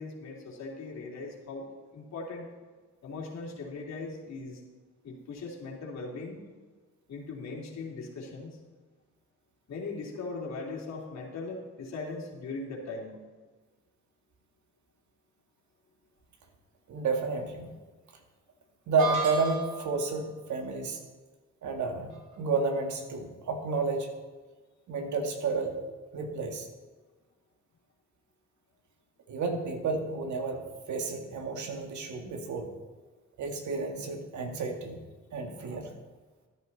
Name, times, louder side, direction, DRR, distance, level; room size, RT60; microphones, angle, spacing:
voice 1, 0.0-1.7 1.9-2.5 3.0-4.6 5.0-6.4 7.1-8.6 9.7-13.2, left 3 dB, 60° left, -2 dB, 3.0 m, -39 dB
voice 2, 16.9-17.7 18.9-21.0 21.6-22.1 22.4-24.1 24.9-25.8 26.1-26.7 29.3-30.6 30.9-32.7 33.4-35.0 35.3-35.9, right 4 dB, 70° right, 4 dB, 1.9 m, -31 dB
sound 1, 19.0-20.0, right 4 dB, 90° right, 3.9 m, -32 dB
13.5 x 10.5 x 4.1 m, 1.3 s
cardioid pair, 90°, 30 cm